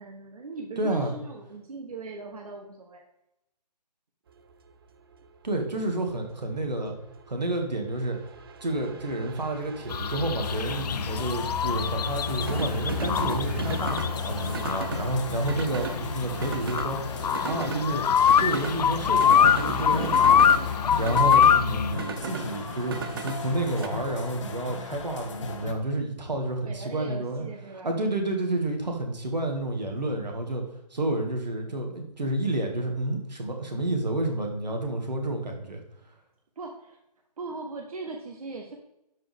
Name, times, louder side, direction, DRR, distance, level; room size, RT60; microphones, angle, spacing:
voice 1, 0.0-3.0 6.8-6.9 9.3-9.5 26.6-28.0 31.6-32.1 36.6-37.0 37.4-38.7, right 3 dB, 60° right, 2 dB, 1.3 m, -39 dB
voice 2, 0.8-1.1 5.4-7.0 7.3-8.2 8.6-18.0 18.4-20.4 21.0-27.5 27.8-30.6 30.9-35.8, right 2 dB, 90° right, 3 dB, 2.3 m, -30 dB
sound 1, 4.4-23.9, right 6 dB, 35° right, 0.6 m, -38 dB
sound 2, 9.9-21.9, left 8 dB, 75° left, 0.4 m, -24 dB
sound 3, 10.4-25.7, left 6 dB, 45° left, 1.1 m, -37 dB
12.0 x 5.2 x 3.6 m, 0.84 s
hypercardioid pair, 155°, 21 cm